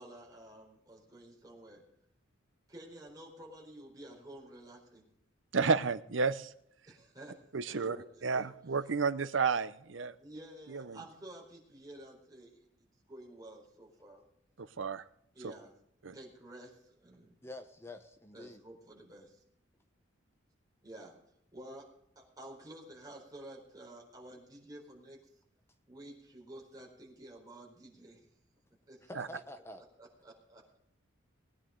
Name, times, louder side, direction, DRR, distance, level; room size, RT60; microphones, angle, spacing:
voice 1, 0.0-1.8 2.7-5.1 6.9-8.5 10.2-14.2 15.3-15.7 16.1-17.4 18.3-19.4 20.8-21.2 21.5-25.2 25.9-28.3 28.9-29.3 30.0-30.8, right 1 dB, 20° right, -2 dB, 4.2 m, -51 dB
voice 2, 5.5-6.5 7.5-8.0 8.2-10.1 10.7-11.0 14.6-15.0 16.0-16.1 29.2-29.3, right 5 dB, 80° right, 14 dB, 0.7 m, -31 dB
voice 3, 17.4-18.6 29.1-29.8, left 1 dB, 15° left, 7 dB, 0.9 m, -47 dB
20.0 x 10.0 x 3.8 m, 0.75 s
head